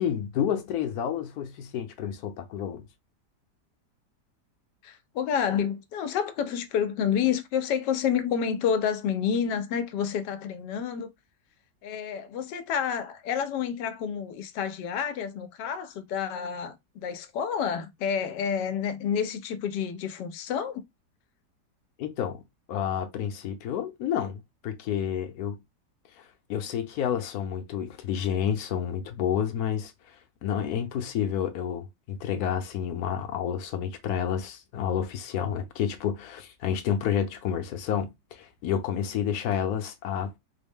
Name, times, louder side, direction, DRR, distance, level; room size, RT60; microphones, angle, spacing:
voice 1, 0.0-2.8 22.0-22.4 22.7-25.6 26.2-26.3 26.5-29.9 30.4-40.3, left 9 dB, 70° left, 1.1 m, -30 dB
voice 2, 4.8-11.1 11.8-20.8, left 7 dB, 85° left, 1.2 m, -29 dB
3.8 x 2.1 x 3.5 m
omnidirectional pair, 1.8 m